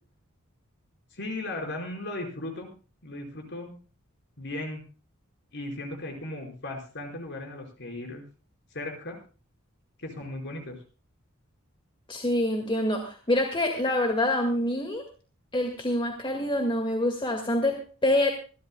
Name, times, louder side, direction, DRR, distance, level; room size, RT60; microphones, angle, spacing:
voice 1, 1.1-2.7 3.0-3.7 4.4-4.8 5.5-8.2 8.7-9.2 10.0-10.8, left 2 dB, 55° left, 2 dB, 5.1 m, -36 dB
voice 2, 12.1-15.0 15.5-18.3, left 1 dB, 25° left, 3 dB, 2.0 m, -26 dB
25.5 x 12.5 x 2.3 m, 0.36 s
head